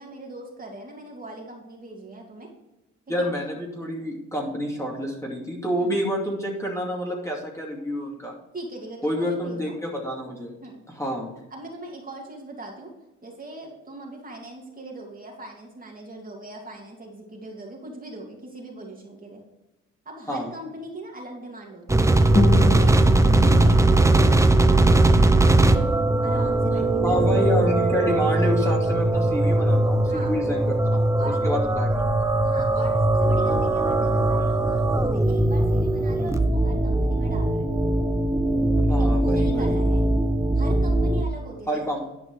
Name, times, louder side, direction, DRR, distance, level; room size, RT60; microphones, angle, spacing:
voice 1, 0.0-2.5 3.2-3.6 5.8-5.9 8.5-9.7 10.6-10.8 11.5-12.9 13.2-19.4 20.0-22.1 22.7-22.9 23.2-25.8 26.2-27.5 30.1-30.3 31.2-31.6 32.4-37.7 39.0-40.1 40.5-41.8, right 1 dB, 30° right, -1 dB, 2.7 m, -40 dB
voice 2, 3.1-8.3 9.0-10.5 10.9-11.3 20.3-20.5 23.4-23.7 27.0-32.2 38.9-39.8 41.7-42.0, equal, 10° left, -2 dB, 2.6 m, -28 dB
sound 1, 21.9-41.3, right 2 dB, 10° right, 0.7 m, -20 dB
Guitar, 22.3-25.4, left 4 dB, 25° left, 1.5 m, -29 dB
11.0 x 5.2 x 4.8 m, 0.95 s
cardioid pair, 90°, 30 cm